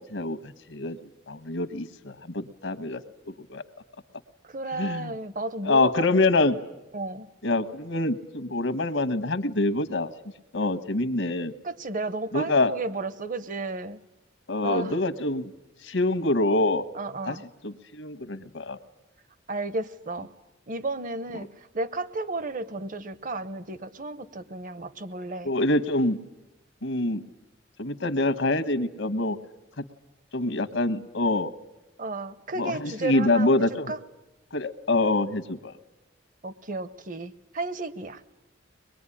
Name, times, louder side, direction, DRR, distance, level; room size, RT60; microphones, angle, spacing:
voice 1, 0.7-3.0 3.3-3.6 4.7-5.1 5.6-6.6 7.4-10.1 10.5-11.5 12.3-12.7 14.5-15.5 15.8-16.8 17.3-17.4 17.6-18.8 25.4-26.2 26.8-27.2 27.8-29.4 29.8-29.9 30.3-31.5 32.6-33.9 34.5-35.7, left 2 dB, 80° left, 15 dB, 1.3 m, -25 dB
voice 2, 4.4-6.2 6.9-7.3 11.6-14.0 14.6-14.9 16.9-17.4 19.5-20.3 20.7-25.5 32.0-34.0 36.4-38.2, right 2 dB, 45° right, 15 dB, 1.0 m, -33 dB
23.5 x 21.0 x 10.0 m, 0.98 s
head